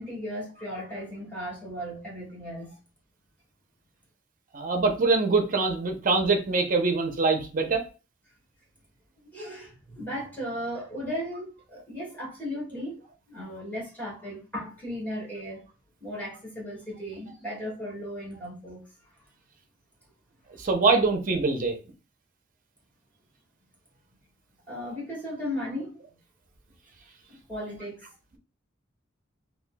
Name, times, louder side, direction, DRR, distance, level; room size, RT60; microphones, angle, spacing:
voice 1, 0.0-2.8 9.3-13.0 13.3-15.6 16.0-18.8 24.7-26.0 27.3-28.0, equal, 10° left, -6 dB, 1.9 m, -36 dB
voice 2, 4.5-7.9 20.6-21.8, right 3 dB, 45° right, 4 dB, 0.7 m, -24 dB
4.2 x 2.8 x 2.3 m, 0.33 s
head